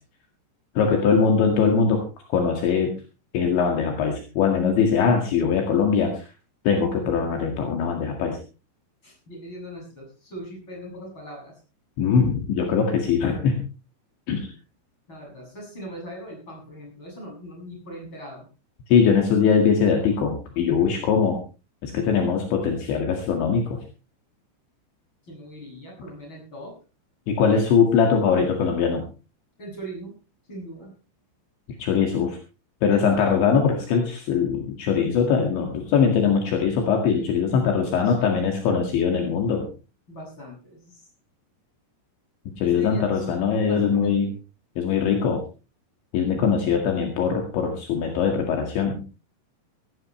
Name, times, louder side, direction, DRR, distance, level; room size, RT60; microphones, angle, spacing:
voice 1, 0.8-2.0 2.3-2.9 3.3-6.3 6.7-8.4 12.0-13.6 14.3-14.5 18.9-21.4 21.8-23.8 27.3-29.0 31.8-32.4 32.8-39.7 42.6-44.3 44.8-45.4 46.1-49.0, left 6 dB, 70° left, 2 dB, 4.2 m, -21 dB
voice 2, 9.0-11.5 14.5-14.6 15.1-18.5 25.2-26.8 29.6-30.1 30.5-30.9 37.5-38.5 40.1-41.1 42.6-44.3 46.3-46.6, equal, 25° left, -1 dB, 8.0 m, -40 dB
17.0 x 17.0 x 3.2 m, 0.33 s
omnidirectional pair, 5.7 m